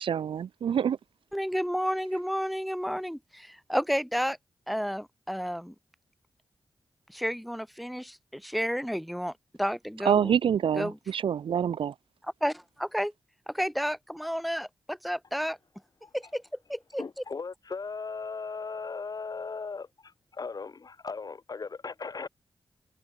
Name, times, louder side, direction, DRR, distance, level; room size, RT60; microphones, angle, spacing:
voice 1, 0.0-1.0 10.0-11.9, right 8 dB, 85° right, 0.8 m, -26 dB
voice 2, 1.3-4.4 4.7-5.7 7.1-9.3 9.6-10.3 10.8-11.0 12.4-13.1 13.5-15.6 16.1-16.4 16.7-17.0, equal, ahead, 1.1 m, -31 dB
voice 3, 17.0-22.3, left 4 dB, 50° left, 1.2 m, -37 dB
cardioid pair, 70°, 9 cm